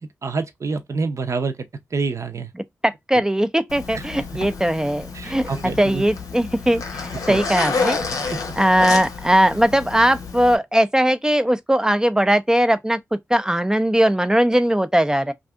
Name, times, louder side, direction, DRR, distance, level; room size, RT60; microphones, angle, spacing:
voice 1, 0.2-1.7 1.9-2.5 3.9-4.1 5.1-6.1 7.3-7.4, right 4 dB, 55° right, 0.7 m, -27 dB
voice 2, 2.8-8.0 8.6-15.3, equal, 10° right, 0.4 m, -19 dB
Zipper (clothing), 3.7-10.6, left 4 dB, 85° left, 0.8 m, -29 dB
2.6 x 2.5 x 3.4 m
cardioid pair, 55°, 6 cm